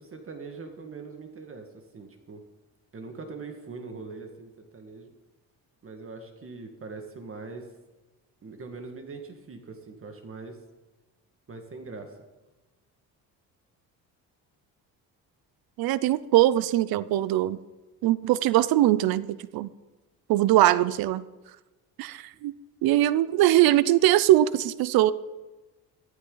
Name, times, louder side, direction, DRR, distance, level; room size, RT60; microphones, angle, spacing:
voice 1, 0.0-2.4 2.9-5.1 5.8-7.7 8.4-10.6 11.5-12.2, right 4 dB, 35° right, 5 dB, 1.8 m, -42 dB
voice 2, 15.8-17.6 18.0-19.7 20.3-21.2 22.0-22.5 22.8-25.1, right 14 dB, 80° right, 17 dB, 0.6 m, -21 dB
14.5 x 13.0 x 3.9 m, 1.1 s
cardioid pair, 110°, 36 cm